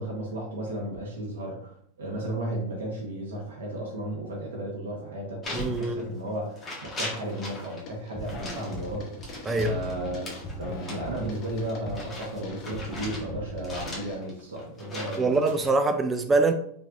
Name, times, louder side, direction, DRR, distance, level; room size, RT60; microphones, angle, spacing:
voice 1, 0.0-9.3 9.6-10.3 10.6-15.4, right 1 dB, 80° right, -1 dB, 1.2 m, -34 dB
sound 1, 5.4-6.3 6.5-7.8 8.2-13.3 13.6-15.7, left 1 dB, 20° left, 1.5 m, -39 dB
voice 2, 5.5-6.1 9.5-9.7 15.2-16.5, right 3 dB, 20° right, 7 dB, 0.3 m, -24 dB
sound 2, 7.3-7.6 7.9-14.2, equal, 45° left, 1.1 m, -39 dB
3.4 x 3.3 x 2.5 m, 0.66 s
hypercardioid pair, 110°, 0 cm